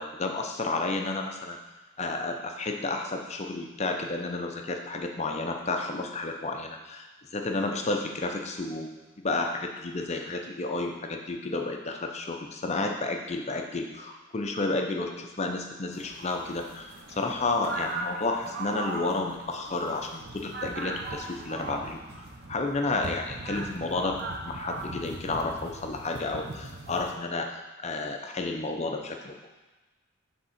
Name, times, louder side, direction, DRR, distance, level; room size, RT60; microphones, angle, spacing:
voice 1, 0.0-1.6 2.0-7.1 7.3-29.3, left 3 dB, 30° left, 3 dB, 0.5 m, -31 dB
sound 1, 15.9-27.1, right 2 dB, 45° right, 0.8 m, -39 dB
6.5 x 3.6 x 5.7 m, 1.2 s
head